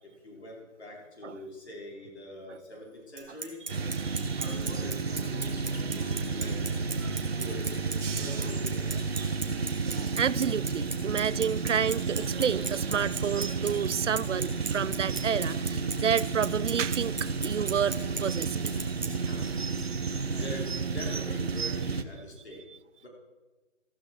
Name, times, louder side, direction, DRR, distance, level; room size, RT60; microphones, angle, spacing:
voice 1, 0.0-3.6 4.3-6.6 7.3-7.7 8.1-9.0 19.1-19.5 20.4-22.6 23.0-23.1, left 1 dB, 55° left, 5.5 m, -44 dB
Bicycle, 3.2-19.1, right 4 dB, 35° right, 1.4 m, -36 dB
sound 1, 3.7-22.0, right 4 dB, 50° right, 0.9 m, -31 dB
voice 2, 4.0-4.4 6.1-6.2 7.0-7.3 8.0-8.4 9.8-18.6, right 7 dB, 70° right, 0.5 m, -30 dB
14.5 x 14.0 x 4.7 m
hypercardioid pair, 180°, 38 cm